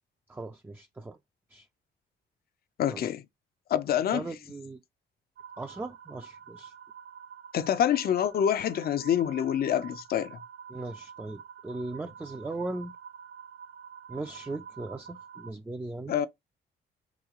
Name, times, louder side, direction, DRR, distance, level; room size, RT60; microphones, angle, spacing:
voice 1, 0.3-1.2 1.5-1.7 2.9-3.0 4.1-4.8 5.6-6.7 10.7-12.9 14.1-16.1, right 2 dB, 10° right, 0.3 m, -38 dB
voice 2, 2.8-3.2 3.7-4.3 7.5-10.4 16.1-16.3, left 9 dB, 50° left, 0.4 m, -26 dB
sound 1, 5.4-15.5, right 7 dB, 65° right, 0.5 m, -47 dB
3.1 x 2.8 x 3.5 m
cardioid pair, 90°, 20 cm